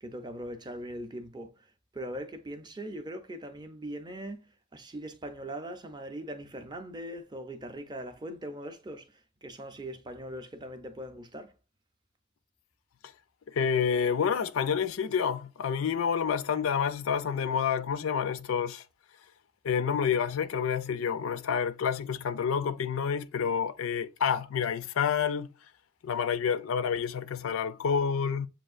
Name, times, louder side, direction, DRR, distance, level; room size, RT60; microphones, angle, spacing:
voice 1, 0.0-11.5, right 1 dB, 20° right, 0.5 m, -41 dB
voice 2, 13.5-18.8 19.6-25.5 26.0-28.5, left 7 dB, 70° left, 0.4 m, -28 dB
7.4 x 2.5 x 2.5 m
head